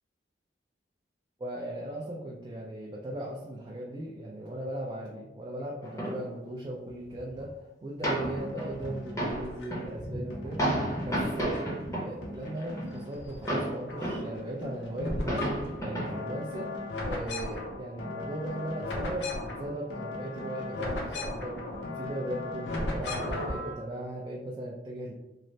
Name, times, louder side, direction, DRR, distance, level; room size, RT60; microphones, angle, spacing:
voice 1, 1.4-7.5 7.8-11.5 12.0-15.5 15.8-16.7 17.0-21.6 22.0-25.1, right 1 dB, 25° right, -3 dB, 0.3 m, -37 dB
sound 1, 5.8-6.3 6.9-7.0 7.2-7.5 8.0-14.3 14.7-14.8 15.0-16.4 16.9-17.0, right 1 dB, 20° left, 0.6 m, -32 dB
sound 2, 8.4-9.9 10.3-11.9 12.2-13.5 13.8-23.7, left 2 dB, 75° left, 0.6 m, -37 dB
3.1 x 2.0 x 2.6 m, 0.97 s
head